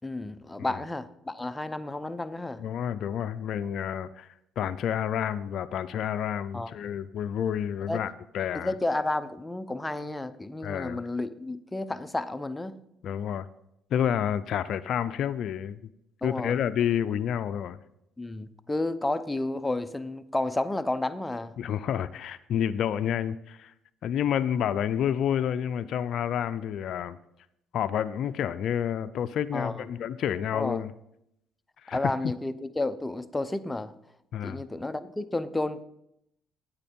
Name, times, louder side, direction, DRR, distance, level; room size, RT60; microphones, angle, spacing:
voice 1, 0.0-2.6 6.5-6.7 7.8-8.0 8.5-12.8 16.2-16.6 18.2-21.5 29.5-29.9 30.5-30.8 31.9-33.9 34.4-35.8, left 2 dB, 10° left, 12 dB, 0.6 m, -31 dB
voice 2, 2.6-4.3 4.6-8.7 10.6-11.0 13.0-13.5 13.9-15.8 16.2-17.8 21.6-23.7 24.0-27.2 27.7-30.9 31.8-32.1 34.3-34.6, left 9 dB, 65° left, 11 dB, 0.4 m, -29 dB
9.2 x 8.8 x 4.3 m, 0.78 s
cardioid pair, 95°, 0 cm